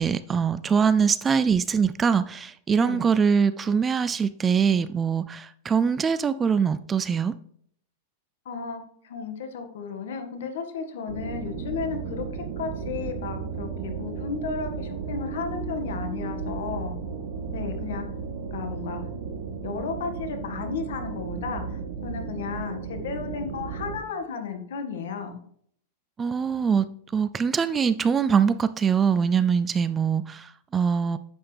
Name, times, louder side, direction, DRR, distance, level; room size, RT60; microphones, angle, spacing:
voice 1, 0.0-7.3 26.2-31.2, right 6 dB, 15° right, 0.3 m, -23 dB
voice 2, 8.5-17.0 17.5-18.1 18.5-19.1 19.6-25.4, left 5 dB, 80° left, 1.8 m, -34 dB
sound 1, 11.1-24.0, right 5 dB, 75° right, 1.8 m, -34 dB
10.5 x 7.7 x 3.4 m
supercardioid pair, 160°, 0 cm